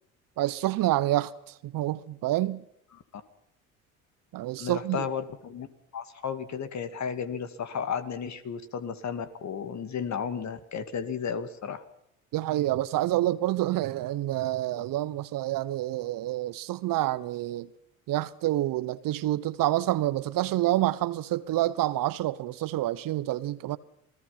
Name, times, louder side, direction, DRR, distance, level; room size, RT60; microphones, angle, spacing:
voice 1, 0.4-2.6 4.3-5.1 12.3-17.7 18.1-23.8, right 15 dB, 55° right, 1.1 m, -28 dB
voice 2, 4.6-5.7 5.9-11.8, left 7 dB, 40° left, 2.3 m, -33 dB
27.5 x 18.0 x 5.8 m
hypercardioid pair, 55°, 41 cm